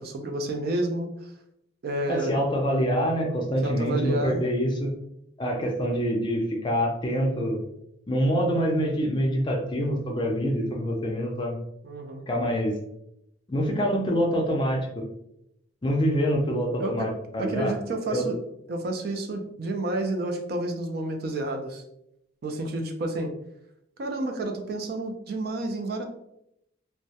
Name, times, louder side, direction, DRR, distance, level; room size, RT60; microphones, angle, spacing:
voice 1, 0.0-1.3 1.8-2.4 3.6-4.4 11.8-12.2 16.8-17.1 17.4-18.4 18.7-21.8 22.4-23.3 24.0-26.1, right 2 dB, 55° right, 4 dB, 0.3 m, -30 dB
voice 2, 2.1-4.9 5.4-7.6 8.1-11.6 12.3-12.8 13.5-15.1 15.8-17.7 18.1-18.3, equal, 25° left, 1 dB, 0.4 m, -25 dB
2.2 x 2.0 x 2.7 m, 0.78 s
head